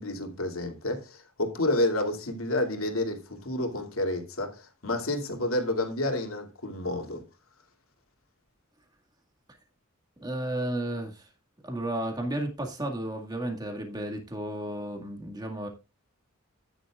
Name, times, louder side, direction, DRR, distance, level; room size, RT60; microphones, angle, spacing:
voice 1, 0.0-4.6 4.8-7.2, left 1 dB, 75° left, 2.7 m, -29 dB
voice 2, 10.2-11.3 11.6-15.7, right 1 dB, 20° right, 2.0 m, -33 dB
14.0 x 10.0 x 2.4 m
head